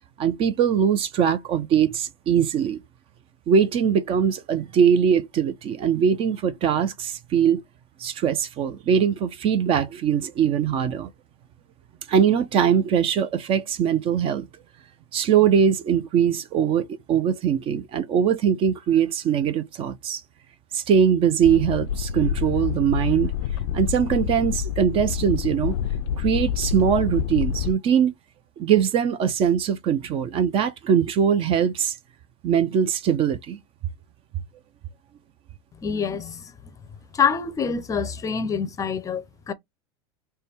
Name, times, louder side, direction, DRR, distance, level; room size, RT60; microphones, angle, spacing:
voice 1, 0.2-2.8 3.5-7.6 8.0-11.1 12.1-14.5 15.1-20.2 20.7-23.3 23.7-25.8 26.2-28.1 28.6-32.0 32.4-33.6, right 8 dB, 40° right, 0.5 m, -21 dB
sound 1, 21.4-27.7, left 9 dB, 75° left, 0.4 m, -27 dB
voice 2, 35.8-36.5 37.1-39.5, left 6 dB, 20° left, 0.5 m, -26 dB
3.3 x 2.2 x 4.3 m
supercardioid pair, 115°, 15 cm